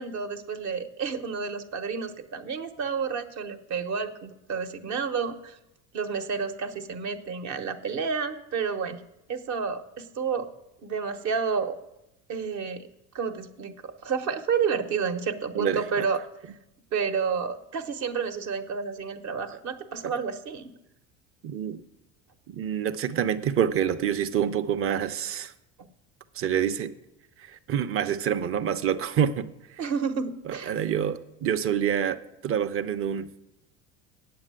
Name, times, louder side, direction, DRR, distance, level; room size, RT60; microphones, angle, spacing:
voice 1, 0.0-5.6 5.9-9.0 9.3-10.5 10.8-11.8 12.3-12.9 13.1-16.2 16.9-20.7 25.8-25.9 29.8-30.8, right 6 dB, 55° right, 7 dB, 1.1 m, -30 dB
voice 2, 15.5-16.0 20.0-20.1 21.4-21.8 22.5-25.5 26.3-26.9 27.7-29.5 30.5-32.2 32.4-33.3, right 9 dB, 40° right, 10 dB, 0.7 m, -27 dB
8.8 x 7.6 x 7.5 m, 0.90 s
supercardioid pair, 100°, 34 cm